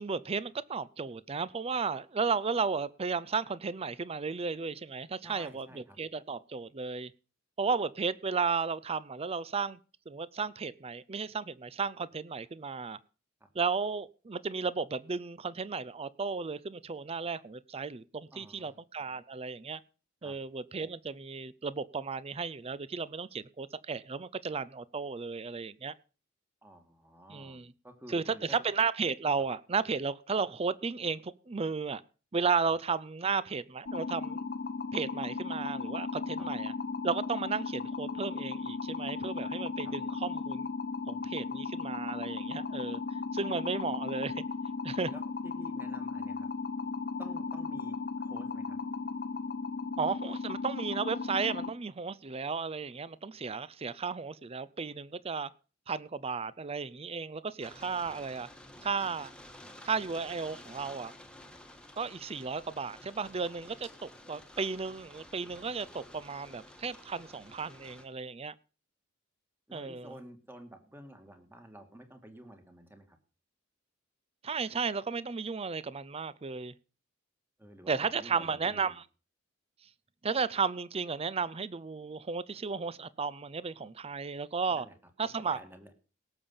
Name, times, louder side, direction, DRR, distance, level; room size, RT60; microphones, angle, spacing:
voice 1, 0.0-7.1 7.6-9.8 10.1-13.0 13.5-19.8 20.2-25.9 27.3-27.7 28.1-32.0 32.3-34.5 34.9-36.7 37.0-40.7 41.1-43.0 43.3-44.4 44.8-45.1 50.0-55.5 55.9-58.5 58.8-59.3 59.8-61.1 62.0-68.5 69.7-70.1 74.4-76.7 77.9-79.0 80.2-84.9 85.2-85.6, right 5 dB, 30° right, 0.5 m, -34 dB
voice 2, 5.2-6.0 13.4-13.5 18.3-18.8 20.2-20.3 26.6-28.6 39.8-39.9 45.1-46.5 47.2-48.8 69.7-73.2 77.6-78.9 84.7-84.9 85.5-85.9, equal, 10° right, 2.0 m, -51 dB
sound 1, 33.9-51.7, left 4 dB, 50° left, 1.1 m, -36 dB
sound 2, 57.6-68.1, left 1 dB, 5° left, 1.5 m, -52 dB
17.5 x 7.0 x 5.6 m
head